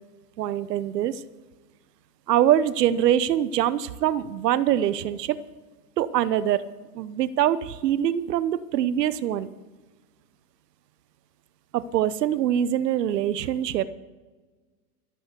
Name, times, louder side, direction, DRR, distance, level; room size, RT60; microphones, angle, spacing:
voice 1, 0.4-1.2 2.3-5.4 6.0-6.6 6.9-9.5 11.7-13.8, right 11 dB, 90° right, 16 dB, 0.9 m, -24 dB
14.0 x 8.3 x 8.0 m, 1.3 s
supercardioid pair, 165°, 47 cm